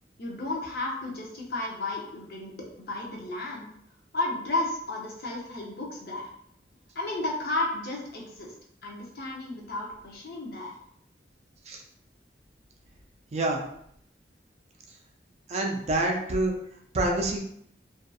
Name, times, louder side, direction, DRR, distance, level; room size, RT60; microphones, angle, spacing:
voice 1, 0.2-3.6 4.1-6.3 6.9-8.5 8.8-10.8, left 2 dB, 60° left, -2 dB, 0.6 m, -33 dB
voice 2, 15.5-16.5 16.9-17.4, right 2 dB, 40° right, 1 dB, 0.4 m, -26 dB
2.6 x 2.4 x 2.3 m, 0.70 s
head